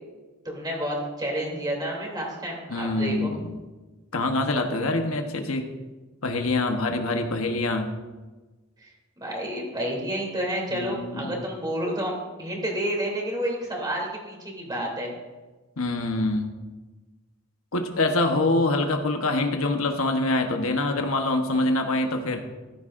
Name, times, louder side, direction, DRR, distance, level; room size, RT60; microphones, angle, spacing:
voice 1, 0.4-3.3 9.2-15.1, right 1 dB, 20° right, -1 dB, 3.0 m, -30 dB
voice 2, 2.7-3.5 4.1-5.7 6.2-7.9 10.7-11.4 15.8-16.5 17.7-22.4, left 2 dB, 80° left, 4 dB, 1.1 m, -25 dB
14.5 x 12.5 x 2.6 m, 1.2 s
head